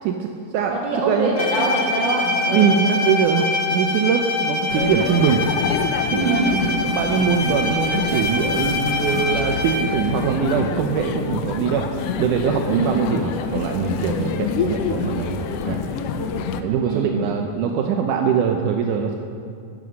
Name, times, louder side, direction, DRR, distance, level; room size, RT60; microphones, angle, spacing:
voice 1, 0.0-1.3 2.5-5.4 6.1-11.9 12.2-15.8 16.6-19.1, right 7 dB, 80° right, 3 dB, 2.2 m, -22 dB
voice 2, 0.6-2.8 6.2-6.6 12.7-13.0 16.8-17.2, right 2 dB, 35° right, -3 dB, 3.4 m, -24 dB
Bowed string instrument, 1.3-10.1, left 2 dB, 45° left, 1.8 m, -25 dB
sound 1, 4.7-16.6, left 6 dB, 85° left, 1.3 m, -27 dB
15.5 x 11.0 x 6.4 m, 2.5 s
omnidirectional pair, 3.7 m